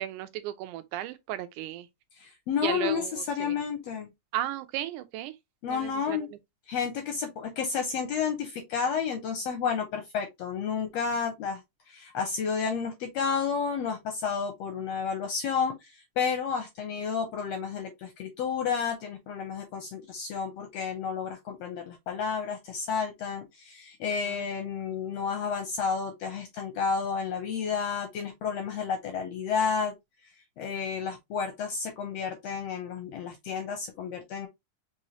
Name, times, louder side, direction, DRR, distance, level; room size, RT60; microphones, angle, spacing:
voice 1, 0.0-1.9 2.6-3.6 4.3-5.3 5.7-6.3 24.3-24.4 24.9-25.0, right 13 dB, 80° right, 2.1 m, -35 dB
voice 2, 2.2-4.1 5.6-6.3 6.7-11.6 11.9-29.9 30.6-34.5, left 6 dB, 75° left, 1.5 m, -31 dB
5.4 x 3.1 x 2.8 m
omnidirectional pair, 3.7 m